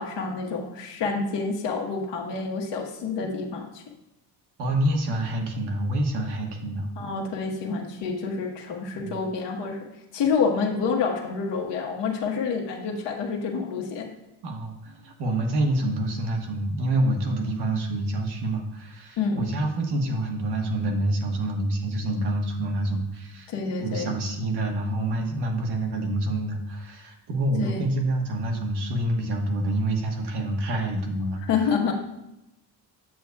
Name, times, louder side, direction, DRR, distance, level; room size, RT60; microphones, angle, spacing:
voice 1, 0.0-3.8 7.0-9.8 10.1-14.1 19.2-19.4 23.5-24.1 27.6-27.8 31.5-31.9, left 5 dB, 80° left, 0 dB, 1.2 m, -28 dB
voice 2, 4.6-6.9 9.0-9.2 14.4-23.5 23.8-31.7, right 1 dB, 75° right, 2 dB, 1.3 m, -27 dB
8.0 x 7.6 x 2.3 m, 0.89 s
cardioid pair, 150°, 41 cm